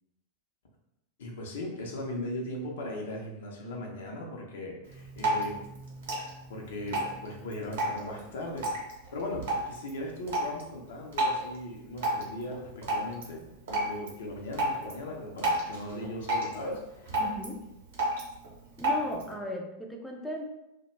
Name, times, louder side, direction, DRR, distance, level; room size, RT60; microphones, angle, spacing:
voice 1, 1.2-5.6 6.5-8.7 9.1-13.4 13.7-17.2, left 1 dB, 60° left, 0 dB, 0.6 m, -38 dB
Drip, 4.8-19.3, right 1 dB, 60° right, 0.8 m, -34 dB
voice 2, 17.2-17.6 18.8-20.4, left 1 dB, 5° left, 0 dB, 0.4 m, -36 dB
2.3 x 2.1 x 3.0 m, 0.93 s
figure-of-eight pair, 90°, 0 cm